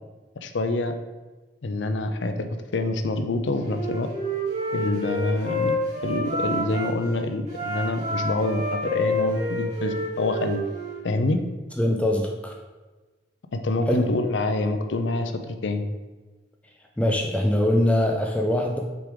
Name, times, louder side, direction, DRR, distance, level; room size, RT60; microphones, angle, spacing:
voice 1, 0.4-0.9 1.6-4.1 4.7-10.6 11.0-11.4 13.5-15.8, left 2 dB, 80° left, 8 dB, 0.6 m, -26 dB
Wind instrument woodwind instrument, 3.6-6.9 7.5-11.0, equal, 40° right, 1.9 m, -29 dB
voice 2, 11.8-12.5 13.9-14.1 17.0-18.8, left 1 dB, 5° left, 1 dB, 0.4 m, -22 dB
5.9 x 3.8 x 4.8 m, 1.2 s
head